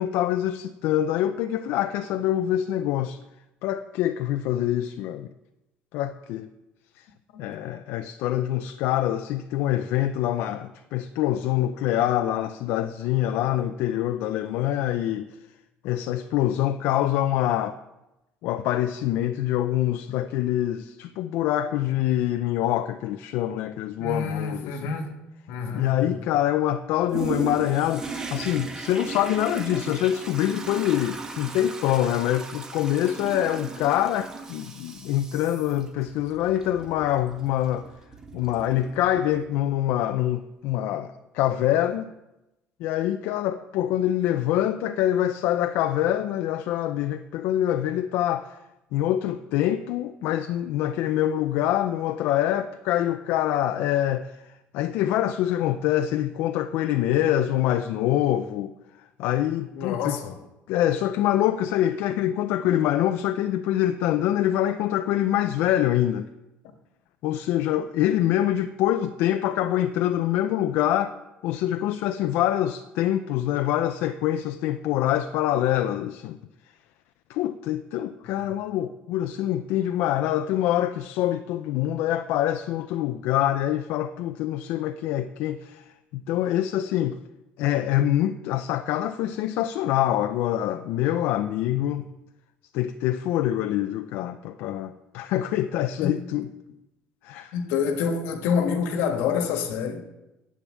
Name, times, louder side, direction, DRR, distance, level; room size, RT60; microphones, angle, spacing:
voice 1, 0.0-3.2 3.6-5.3 5.9-6.5 7.0-7.1 7.4-15.3 15.8-17.8 18.4-24.9 25.7-37.9 38.3-42.1 42.8-48.6 48.9-58.7 59.2-60.2 60.7-66.3 67.2-71.1 71.4-76.4 77.3-87.2 87.6-92.1 92.7-96.5 97.2-97.5, left 12 dB, 70° left, 0.5 m, -25 dB
voice 2, 7.3-7.7 24.0-25.2 25.5-26.2 59.7-60.4 96.0-96.2 97.5-100.0, left 6 dB, 85° left, 1.6 m, -28 dB
Toilet flush, 27.1-39.5 40.1-40.2, right 4 dB, 15° right, 1.1 m, -37 dB
10.0 x 8.7 x 7.4 m
cardioid pair, 180°, 4 cm